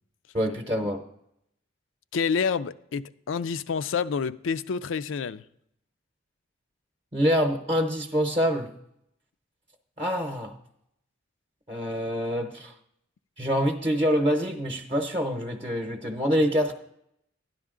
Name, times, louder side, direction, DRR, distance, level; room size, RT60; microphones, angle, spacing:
voice 1, 0.3-1.0 7.1-8.7 10.0-10.5 11.7-12.7 13.4-16.7, equal, 30° right, 0.8 m, -26 dB
voice 2, 2.1-5.4, left 6 dB, 85° left, 0.4 m, -28 dB
12.5 x 10.5 x 3.7 m
head